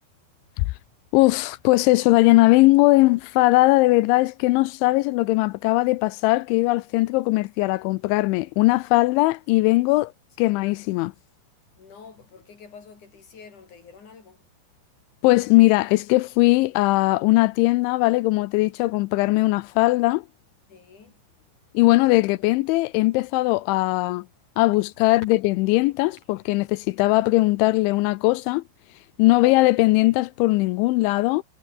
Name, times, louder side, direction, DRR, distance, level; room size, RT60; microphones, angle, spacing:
voice 1, 0.4-1.0 11.8-14.5 15.2-15.3 20.7-21.6 25.0-25.1 29.3-29.6, left 5 dB, 40° left, 5.6 m, -49 dB
voice 2, 1.1-10.1 10.4-11.1 15.2-20.2 21.7-24.2 24.6-28.6 29.2-31.4, left 21 dB, 85° left, 2.7 m, -19 dB
omnidirectional pair, 6.0 m